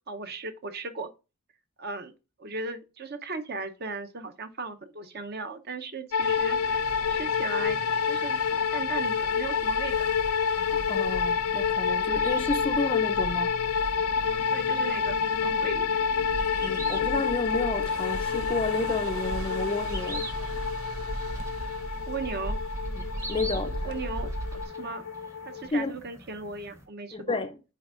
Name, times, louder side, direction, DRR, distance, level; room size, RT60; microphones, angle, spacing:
voice 1, 0.1-1.1 1.8-2.1 2.4-7.8 8.1-10.1 14.5-15.9 22.1-22.6 23.5-23.6 23.9-24.3 24.8-25.0 25.5-27.4, right 3 dB, 45° right, 0.7 m, -37 dB
sound 1, 6.1-25.7, left 6 dB, 85° left, 0.4 m, -28 dB
sound 2, 6.2-24.6, right 1 dB, 80° right, 0.8 m, -38 dB
sound 3, 10.6-26.9, right 1 dB, 15° right, 0.8 m, -47 dB
voice 2, 10.9-13.5 16.6-20.3 22.9-23.9 25.7-26.0 27.1-27.6, left 3 dB, 25° left, 0.5 m, -31 dB
9.3 x 4.4 x 2.4 m
head